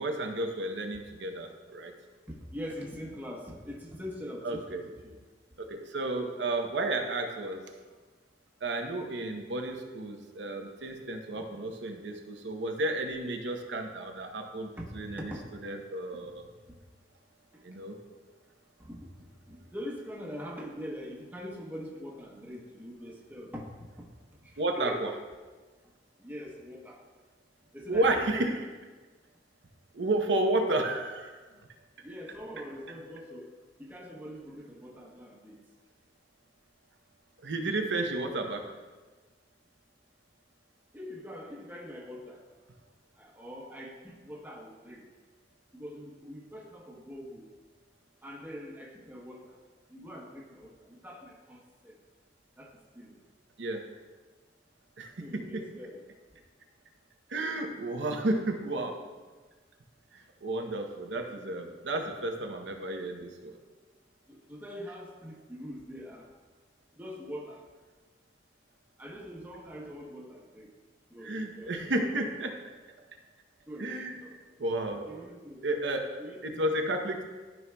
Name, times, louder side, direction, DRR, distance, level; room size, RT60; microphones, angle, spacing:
voice 1, 0.0-1.9 4.4-4.8 5.6-7.6 8.6-14.7 14.9-15.2 15.6-16.4 17.6-18.0 24.6-25.1 27.9-28.6 29.9-31.3 37.4-38.6 53.6-53.8 55.0-55.6 57.3-59.0 60.1-63.6 71.2-72.5 73.8-74.2 74.6-75.1 75.6-76.0 76.4-77.2, right 2 dB, 90° right, 3 dB, 0.8 m, -32 dB
voice 2, 2.3-5.2 14.8-15.5 16.2-16.4 18.8-19.1 19.5-24.1 24.4-25.2 26.2-27.0 27.7-28.6 32.0-35.6 40.9-42.4 43.2-45.1 45.7-47.5 48.2-49.6 49.9-52.0 52.6-53.2 55.2-56.0 64.3-66.3 66.9-67.6 69.0-70.7 71.1-72.3 73.7-74.4 75.1-75.6 76.2-76.7, equal, 10° right, -2 dB, 0.9 m, -43 dB
12.5 x 5.4 x 2.3 m, 1.3 s
head